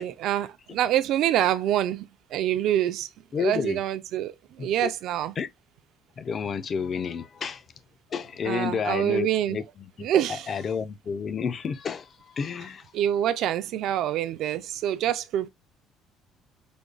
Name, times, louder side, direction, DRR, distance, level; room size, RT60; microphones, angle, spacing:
voice 1, 0.0-3.1 3.3-5.3 8.4-9.6 10.0-10.5 12.9-15.5, right 11 dB, 55° right, 0.3 m, -26 dB
voice 2, 3.3-3.8 4.6-4.9 5.4-5.5 6.2-7.6 8.1-9.6 10.0-12.9, left 6 dB, 30° left, 0.3 m, -30 dB
5.0 x 2.1 x 2.3 m
cardioid pair, 180°, 0 cm